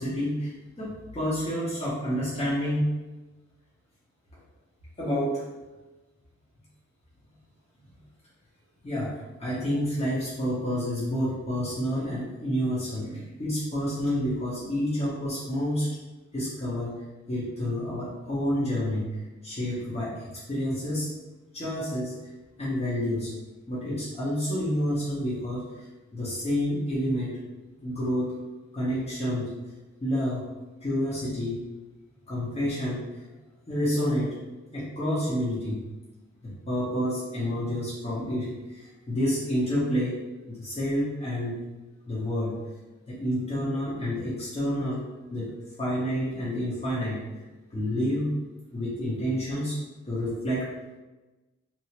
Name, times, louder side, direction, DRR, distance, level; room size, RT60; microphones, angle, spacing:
voice 1, 0.0-2.9 5.0-5.5 8.8-15.9 16.3-17.0 17.3-21.1 21.5-22.1 22.6-23.3 23.7-27.4 27.8-28.3 28.7-29.5 30.0-30.5 30.8-31.6 32.3-33.0 33.7-34.4 34.7-35.8 36.4-40.2 40.5-41.6 42.1-42.6 43.1-45.0 45.3-45.5 45.8-47.4 47.7-48.3 48.7-49.8 50.1-50.7, equal, 20° left, -10 dB, 0.9 m, -29 dB
2.9 x 2.6 x 2.9 m, 1.1 s
wide cardioid pair, 145°, 29 cm